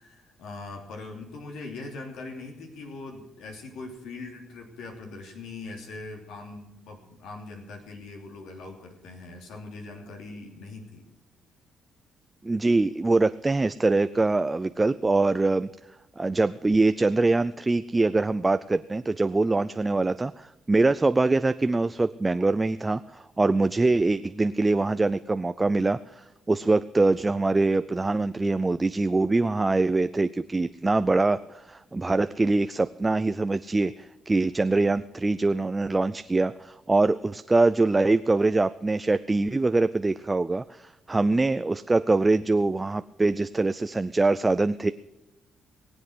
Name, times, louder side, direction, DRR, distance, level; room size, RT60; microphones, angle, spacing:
voice 1, 0.0-11.0, left 3 dB, 85° left, 3 dB, 3.0 m, -41 dB
voice 2, 12.4-15.7 16.2-44.9, right 3 dB, 15° right, 12 dB, 0.4 m, -24 dB
21.0 x 8.1 x 6.3 m, 0.95 s
cardioid pair, 120°, 0 cm